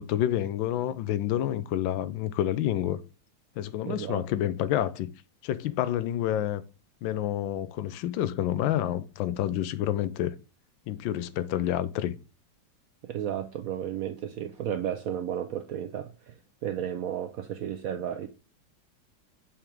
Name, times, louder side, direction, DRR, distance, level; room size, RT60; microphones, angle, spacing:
voice 1, 0.0-3.0 3.6-5.1 5.4-6.6 7.0-10.3 10.9-12.1, left 12 dB, 85° left, 1.4 m, -28 dB
voice 2, 3.9-4.2 13.0-18.3, right 10 dB, 70° right, 0.8 m, -33 dB
7.3 x 3.5 x 4.5 m
omnidirectional pair, 2.1 m